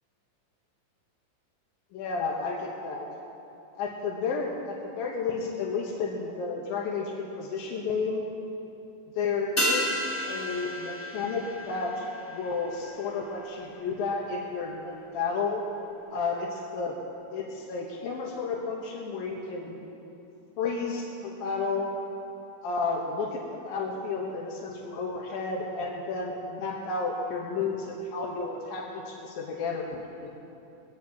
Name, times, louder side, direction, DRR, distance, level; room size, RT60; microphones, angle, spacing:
voice 1, 1.9-3.1 3.8-8.2 9.2-15.6 16.1-17.0 17.3-19.8 20.6-21.9 22.6-23.4 23.7-30.3, left 4 dB, 90° left, -2 dB, 3.0 m, -32 dB
sound 1, 9.6-14.3 14.5-14.6, equal, 40° left, 0.7 m, -33 dB
22.0 x 18.0 x 3.0 m, 2.9 s
omnidirectional pair, 4.0 m